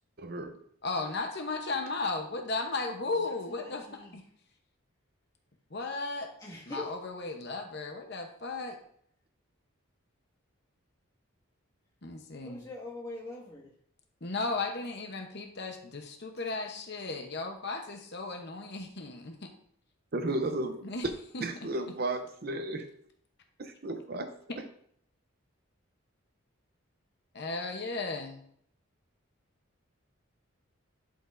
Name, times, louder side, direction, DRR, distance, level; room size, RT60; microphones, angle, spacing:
voice 1, 0.2-0.6 20.1-20.8 21.4-22.9 23.6-24.6, right 2 dB, 45° right, 7 dB, 0.6 m, -34 dB
voice 2, 0.8-4.2 5.7-6.3 6.7-8.8 12.0-12.6 14.2-19.5 20.8-21.1 21.3-21.4 27.3-28.4, left 3 dB, 50° left, 3 dB, 0.8 m, -35 dB
voice 3, 3.2-4.2 6.4-6.9 12.4-13.7, left 2 dB, 15° left, -4 dB, 1.8 m, -43 dB
11.0 x 5.1 x 2.6 m, 0.65 s
head